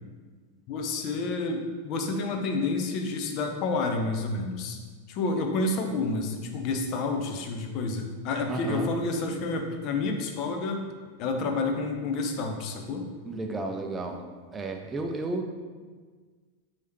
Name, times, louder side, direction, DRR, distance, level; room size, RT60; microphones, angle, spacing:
voice 1, 0.7-4.8 5.1-10.8 11.2-13.0, left 3 dB, 40° left, 4 dB, 0.5 m, -29 dB
voice 2, 8.5-8.9 13.2-14.2 14.5-15.5, right 2 dB, 15° right, 3 dB, 0.4 m, -32 dB
4.6 x 2.8 x 3.2 m, 1.5 s
figure-of-eight pair, 90°, 0 cm